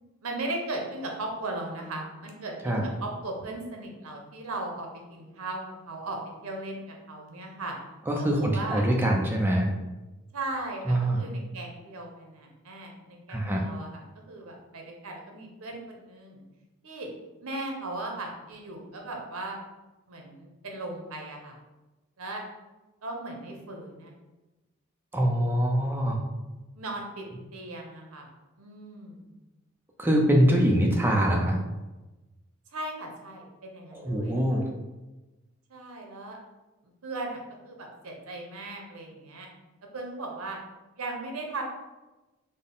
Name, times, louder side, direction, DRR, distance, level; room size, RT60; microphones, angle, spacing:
voice 1, 0.2-5.6 5.9-6.2 6.4-7.8 8.2-8.8 10.3-16.4 16.8-17.1 17.4-19.6 20.1-21.6 22.2-22.4 23.0-24.1 26.7-27.2 27.5-28.3 28.6-29.3 32.7-34.6 35.7-36.4 37.0-39.5 39.9-40.6 40.9-41.6, right 2 dB, 85° right, 1 dB, 0.7 m, -37 dB
voice 2, 8.1-9.7 10.9-11.2 13.3-13.6 25.1-26.2 30.0-31.6 33.9-34.7, right 1 dB, 10° right, 0 dB, 0.4 m, -24 dB
3.8 x 2.1 x 3.8 m, 1.1 s
head